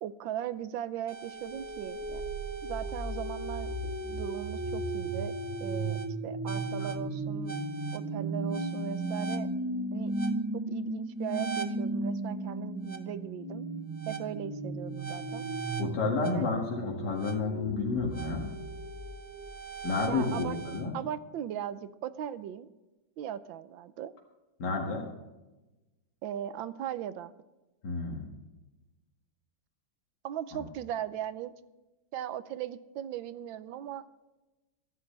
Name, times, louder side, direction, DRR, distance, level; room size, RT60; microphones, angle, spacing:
voice 1, 0.0-2.2 2.6-5.3 5.6-7.5 7.9-9.5 9.9-10.1 10.5-13.6 14.1-15.5 16.3-16.5 20.1-20.6 20.9-22.7 23.2-24.1 26.2-27.3 30.2-31.5 32.1-34.0, right 10 dB, 80° right, 14 dB, 1.4 m, -38 dB
sound 1, 1.1-20.8, right 2 dB, 20° right, 0.4 m, -35 dB
voice 2, 15.8-18.5 19.8-20.9 24.6-25.0 27.8-28.3 30.5-30.6, left 3 dB, 60° left, -2 dB, 2.6 m, -31 dB
22.5 x 11.0 x 3.3 m, 1.1 s
omnidirectional pair, 2.1 m